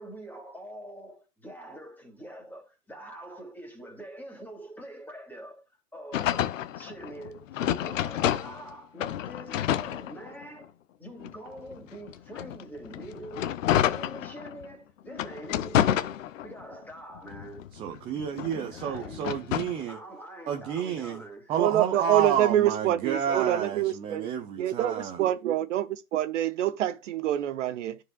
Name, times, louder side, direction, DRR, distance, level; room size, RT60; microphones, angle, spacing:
voice 1, 0.0-5.7 5.9-17.7 18.5-19.6 19.9-21.7, right 1 dB, 5° left, 2.3 m, -44 dB
sound 1, 6.1-8.7 9.0-10.6 11.2-14.7 15.1-16.7 17.2-19.8, left 11 dB, 55° left, 0.7 m, -29 dB
voice 2, 17.7-20.0 20.5-21.2 21.5-25.2, right 8 dB, 15° right, 0.4 m, -30 dB
voice 3, 21.6-24.3 24.6-28.0, right 12 dB, 50° right, 0.8 m, -26 dB
13.0 x 4.8 x 2.3 m
hypercardioid pair, 115°, 46 cm